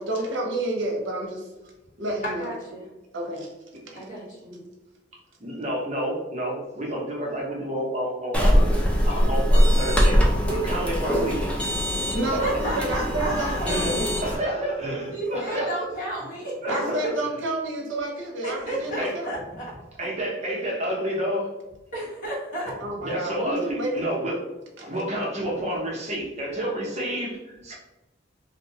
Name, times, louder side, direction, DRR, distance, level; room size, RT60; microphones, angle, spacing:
voice 1, 0.0-1.5 2.0-2.5 3.1-3.5 4.5-4.6 12.1-14.2 16.7-19.4 22.8-23.9, right 1 dB, 90° right, 1 dB, 0.6 m, -29 dB
voice 2, 2.2-2.9 3.9-4.5 12.4-13.9 15.1-17.1 18.4-19.7 21.9-22.8, right 1 dB, 45° left, -6 dB, 1.2 m, -32 dB
voice 3, 5.4-11.5 12.3-12.4 13.4-14.0 14.2-15.8 16.6-17.1 19.0-19.1 20.0-21.5 23.0-24.4 24.8-27.7, right 1 dB, 40° right, -2 dB, 0.7 m, -29 dB
sound 1, 8.3-14.4, equal, 5° left, 0.4 m, -22 dB
2.6 x 2.1 x 2.8 m, 1.0 s
head